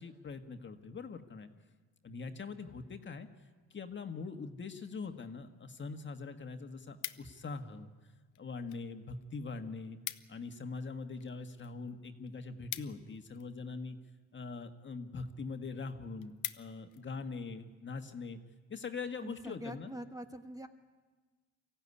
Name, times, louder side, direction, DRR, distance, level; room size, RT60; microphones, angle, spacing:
voice 1, 0.0-1.5 2.0-3.3 3.7-7.9 8.4-10.0 10.3-14.0 14.3-18.4 18.7-19.9, left 4 dB, 40° left, 6 dB, 1.7 m, -42 dB
sound 1, 6.5-7.6 8.3-8.8 9.1-9.3 9.5-9.6 9.8-10.5 10.8-13.7 14.4-14.7 15.2-15.3 15.7-15.8 16.0-17.0 17.5-17.7, left 15 dB, 85° left, 0.8 m, -44 dB
voice 2, 19.2-20.7, equal, 10° right, 6 dB, 1.4 m, -44 dB
23.5 x 15.5 x 9.8 m, 1.3 s
cardioid pair, 90°, 30 cm